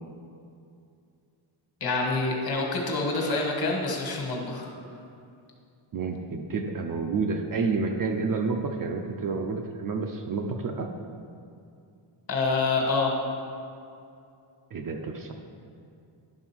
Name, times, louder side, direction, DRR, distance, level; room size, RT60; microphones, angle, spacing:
voice 1, 1.8-4.7 12.3-13.1, left 3 dB, 45° left, 0 dB, 1.5 m, -26 dB
voice 2, 5.9-10.9 14.7-15.3, right 4 dB, 45° right, 3 dB, 0.5 m, -29 dB
11.0 x 3.8 x 6.0 m, 2.5 s
wide cardioid pair, 175°, 50 cm